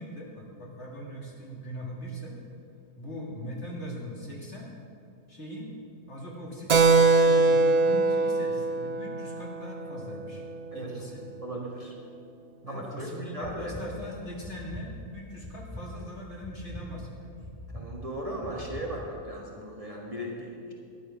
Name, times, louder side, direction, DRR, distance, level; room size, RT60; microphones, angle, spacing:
voice 1, 0.0-2.4 3.0-4.7 5.3-5.7 6.1-6.8 7.1-10.4 10.7-11.2 12.6-17.4, equal, 50° left, -3 dB, 2.4 m, -40 dB
Keyboard (musical), 6.7-10.8, right 3 dB, 65° right, 0.4 m, -23 dB
voice 2, 11.4-11.9 12.7-13.8 17.7-20.7, right 1 dB, 25° right, -3 dB, 1.5 m, -37 dB
sound 1, 13.4-13.8 14.4-14.8 15.4-15.8 16.4-16.8 17.4-17.8 18.4-18.8, equal, 10° right, 2.0 m, -41 dB
12.0 x 10.5 x 5.8 m, 2.5 s
omnidirectional pair, 1.5 m